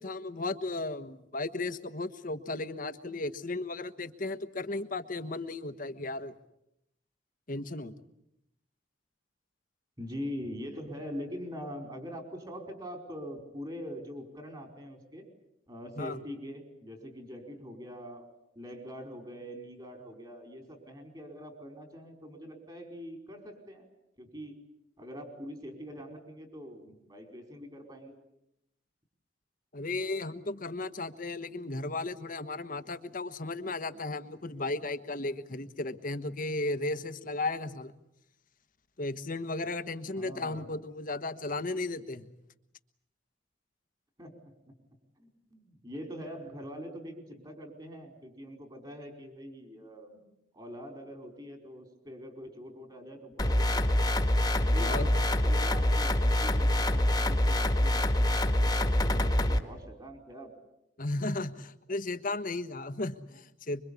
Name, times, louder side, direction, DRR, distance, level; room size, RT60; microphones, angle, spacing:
voice 1, 0.0-6.3 7.5-7.9 16.0-16.2 29.7-37.9 39.0-42.3 54.8-55.1 61.0-63.8, left 2 dB, 50° left, 11 dB, 1.3 m, -35 dB
voice 2, 10.0-15.3 15.7-18.3 18.5-23.9 24.2-24.5 25.0-28.1 40.1-40.7 44.2-44.5 45.2-50.2 50.5-54.0 54.6-55.2 55.4-60.5, equal, 25° right, 4 dB, 4.8 m, -43 dB
sound 1, 53.4-59.6, left 1 dB, 20° left, 1.8 m, -25 dB
25.5 x 23.5 x 8.4 m, 0.81 s
head